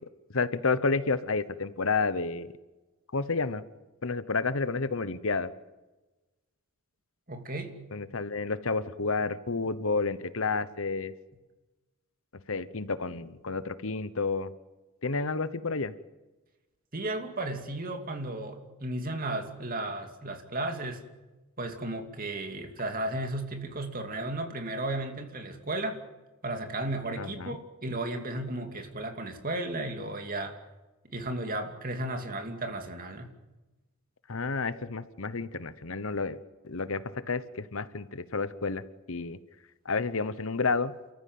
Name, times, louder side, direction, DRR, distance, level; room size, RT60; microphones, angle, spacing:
voice 1, 0.0-2.5 3.1-3.6 4.0-5.5 7.9-11.1 12.5-14.5 15.0-15.9 27.2-27.6 34.3-36.4 36.6-39.4 39.8-40.9, left 4 dB, 65° left, 15 dB, 1.0 m, -30 dB
voice 2, 7.3-7.8 16.9-21.0 21.6-26.0 26.4-30.5 31.0-33.3, right 2 dB, 40° right, 5 dB, 2.7 m, -34 dB
29.0 x 14.0 x 9.5 m, 1.1 s
head